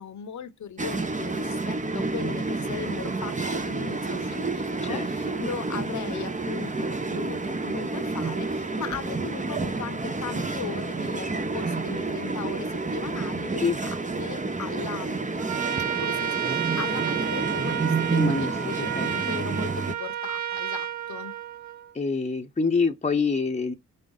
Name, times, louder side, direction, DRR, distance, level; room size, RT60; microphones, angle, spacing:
voice 1, 0.0-15.3 16.0-21.4, left 8 dB, 70° left, 1.0 m, -38 dB
sound 1, 0.8-19.9, right 3 dB, 25° right, 0.9 m, -29 dB
voice 2, 4.8-5.4 13.6-13.8 18.2-18.5 18.8-19.1 21.9-23.7, left 4 dB, 20° left, 0.9 m, -26 dB
Trumpet, 15.4-21.9, right 10 dB, 65° right, 0.6 m, -31 dB
5.3 x 2.1 x 3.9 m
cardioid pair, 55°, 30 cm